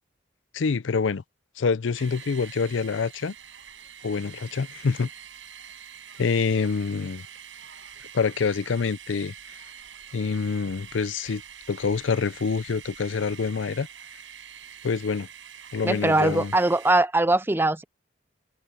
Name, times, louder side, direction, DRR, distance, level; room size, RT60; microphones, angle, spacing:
voice 1, 0.5-1.2 1.6-3.3 4.0-5.1 6.2-7.2 8.1-9.3 10.1-11.4 11.7-13.9 14.8-15.3 15.7-16.5, left 5 dB, 75° left, 0.5 m, -26 dB
sound 1, 1.9-16.9, right 8 dB, 75° right, 7.1 m, -45 dB
voice 2, 15.8-17.8, right 2 dB, 10° right, 0.5 m, -21 dB
head